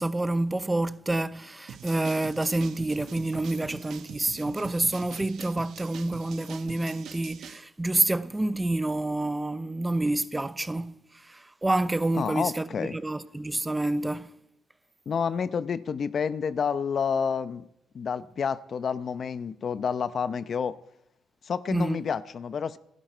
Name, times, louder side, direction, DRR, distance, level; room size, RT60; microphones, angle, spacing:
voice 1, 0.0-11.0 11.3-14.3 21.7-22.0, right 2 dB, 15° right, 0.7 m, -28 dB
sound 1, 1.7-7.6, right 8 dB, 70° right, 1.0 m, -44 dB
voice 2, 12.1-13.0 15.1-17.7 17.9-20.8 21.4-22.8, left 6 dB, 50° left, 0.8 m, -29 dB
28.0 x 10.5 x 4.5 m
cardioid pair, 90°, 0 cm